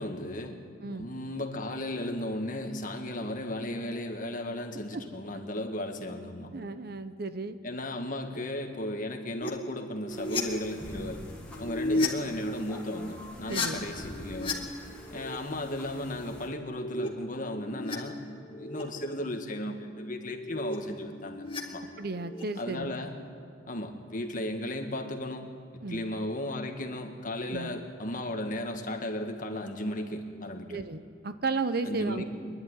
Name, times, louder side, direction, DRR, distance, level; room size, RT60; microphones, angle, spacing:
voice 1, 0.0-6.5 7.6-11.2 11.6-14.5 15.1-21.8 22.6-23.1 23.7-25.5 25.9-30.8 31.8-32.2, left 1 dB, 45° left, 4 dB, 1.8 m, -35 dB
voice 2, 6.5-7.6 11.9-12.1 13.5-13.8 22.0-22.9 25.8-26.1 27.5-27.7 30.7-32.2, right 3 dB, 55° right, 11 dB, 0.8 m, -34 dB
sound 1, 9.4-9.5 9.8-10.4 11.5-12.1 13.3-14.5 14.8-15.3 16.4-18.0 18.3-18.8 20.1-21.6 21.9-22.4, left 2 dB, 30° left, 2.1 m, -34 dB
sound 2, 10.1-16.5, equal, 5° left, 2.5 m, -47 dB
24.5 x 11.5 x 9.8 m, 2.3 s
head